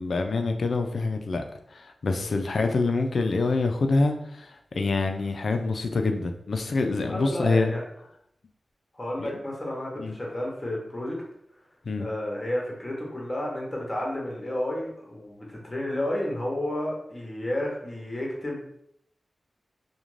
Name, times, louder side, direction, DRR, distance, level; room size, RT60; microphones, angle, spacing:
voice 1, 0.0-1.4 1.7-7.7 9.2-9.4 10.0-10.1 11.9-12.1, left 3 dB, 65° left, 6 dB, 0.3 m, -26 dB
voice 2, 7.1-7.8 9.0-11.2 12.0-18.8, left 1 dB, 20° left, -2 dB, 0.8 m, -31 dB
2.4 x 2.1 x 3.0 m, 0.72 s
wide cardioid pair, 110°, 0 cm